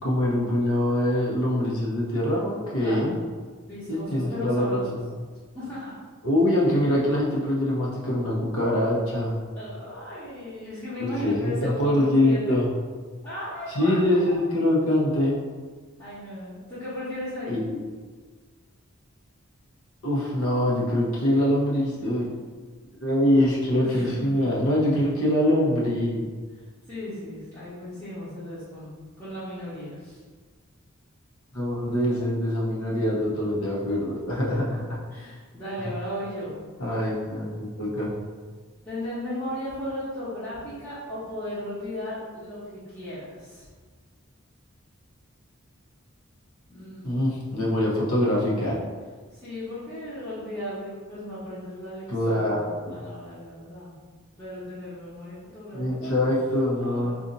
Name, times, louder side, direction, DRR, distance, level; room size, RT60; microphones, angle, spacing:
voice 1, 0.0-3.2 3.9-5.1 6.2-9.4 11.0-12.7 13.7-15.4 17.5-17.8 20.0-22.3 23.0-26.3 31.5-35.0 35.8-35.9 36.8-38.1 47.0-48.8 52.1-53.0 55.7-57.2, left 1 dB, 85° left, -5 dB, 0.9 m, -24 dB
voice 2, 2.8-3.2 3.6-5.0 5.5-5.9 9.5-12.6 13.2-14.4 16.0-17.6 23.8-24.6 26.9-30.2 34.5-34.6 35.1-36.6 38.8-43.7 46.7-47.2 49.3-54.0 54.4-56.3 56.7-57.0, left 1 dB, 15° left, -15 dB, 0.9 m, -36 dB
2.6 x 2.5 x 4.0 m, 1.5 s
head